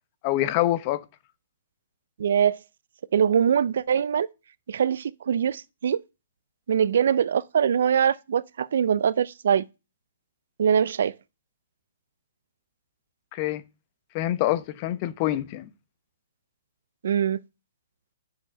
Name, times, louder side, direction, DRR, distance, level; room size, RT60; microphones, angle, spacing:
voice 1, 0.2-1.0 13.3-13.6 14.1-15.7, left 14 dB, 35° left, 0.9 m, -25 dB
voice 2, 2.2-2.6 3.1-4.3 4.7-6.0 6.7-9.7 10.6-11.1 17.0-17.4, right 8 dB, 65° right, 0.5 m, -23 dB
7.0 x 6.3 x 6.4 m
hypercardioid pair, 130°, 0 cm